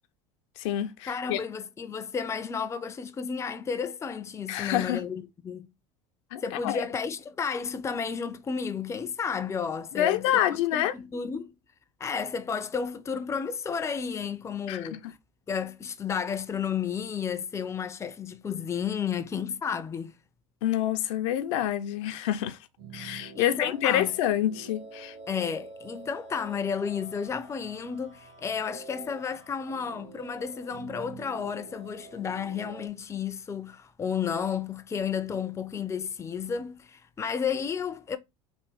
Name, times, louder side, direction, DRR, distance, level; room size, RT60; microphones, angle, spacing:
voice 1, 0.6-1.4 4.5-5.0 6.3-6.8 10.0-11.0 14.7-15.0 20.6-22.6 22.9-25.1, left 12 dB, 70° left, 0.5 m, -27 dB
voice 2, 1.1-5.7 6.4-10.4 10.7-11.5 12.0-15.2 15.5-20.1 23.4-24.1 25.3-38.2, left 6 dB, 15° left, 0.4 m, -32 dB
sound 1, 22.8-32.9, right 4 dB, 75° right, 1.8 m, -47 dB
3.5 x 2.4 x 3.3 m
hypercardioid pair, 85°, 16 cm